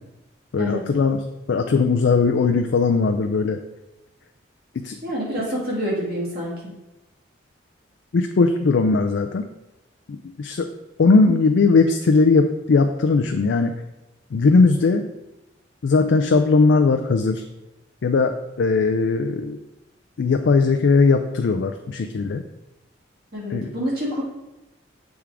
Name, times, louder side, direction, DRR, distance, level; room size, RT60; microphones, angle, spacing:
voice 1, 0.5-1.2 1.5-3.6 4.8-5.0 8.1-9.5 10.1-10.7 11.0-13.8 14.3-15.1 15.8-17.4 18.0-19.6 20.2-22.4 23.5-23.7, left 4 dB, 65° left, 5 dB, 0.4 m, -19 dB
voice 2, 5.0-6.7 23.3-24.2, equal, 50° right, -5 dB, 2.3 m, -27 dB
7.3 x 3.5 x 4.8 m, 0.98 s
head